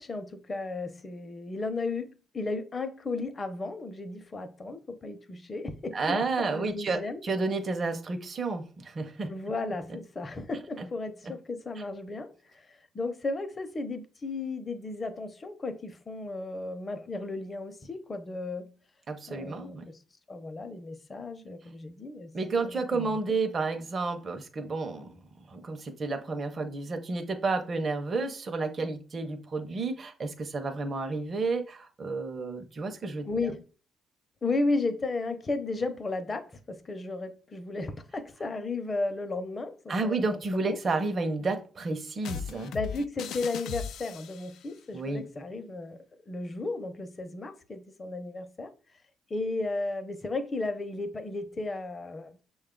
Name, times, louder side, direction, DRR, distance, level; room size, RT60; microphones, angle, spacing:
voice 1, 0.0-7.2 9.3-18.7 19.3-20.0 20.3-23.2 33.3-33.6 34.4-40.8 42.7-48.7 49.3-52.4, left 3 dB, 30° left, 0.7 m, -34 dB
voice 2, 5.9-9.3 10.8-10.9 19.1-19.8 22.3-25.2 25.5-33.3 39.9-42.7 44.9-45.2, right 3 dB, 40° right, 0.7 m, -31 dB
sound 1, 42.2-44.6, left 7 dB, 80° left, 0.4 m, -38 dB
6.2 x 2.3 x 3.7 m
cardioid pair, 90°, 0 cm